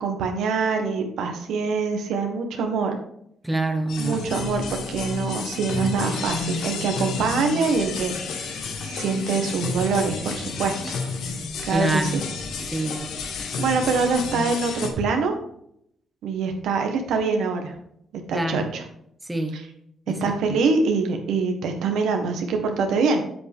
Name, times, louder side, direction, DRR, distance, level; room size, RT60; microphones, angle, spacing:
voice 1, 0.0-3.0 4.0-8.1 8.8-11.0 11.6-12.2 13.6-15.3 16.2-17.8 18.3-18.8 19.5-19.6 20.1-23.2, right 4 dB, 80° right, 4 dB, 1.5 m, -24 dB
voice 2, 3.4-4.2 11.7-12.2 12.7-13.0 18.3-18.6 19.3-19.6 20.1-20.6, right 1 dB, 10° right, 5 dB, 1.2 m, -26 dB
sound 1, 3.9-14.9, left 4 dB, 75° left, 1.4 m, -31 dB
7.8 x 7.6 x 3.6 m, 0.72 s
cardioid pair, 90°, 0 cm